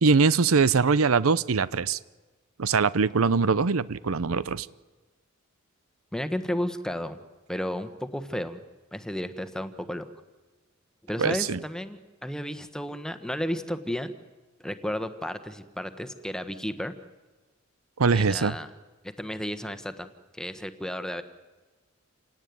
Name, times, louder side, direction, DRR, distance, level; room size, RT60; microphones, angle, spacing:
voice 1, 0.0-2.0 2.6-4.7 11.2-11.6 18.0-18.5, right 5 dB, 90° right, 18 dB, 0.7 m, -22 dB
voice 2, 6.1-7.2 7.5-8.6 8.9-10.1 11.1-14.1 14.6-16.9 18.1-18.7 19.0-21.2, equal, 5° left, 9 dB, 1.3 m, -33 dB
28.5 x 17.5 x 9.5 m, 1.3 s
head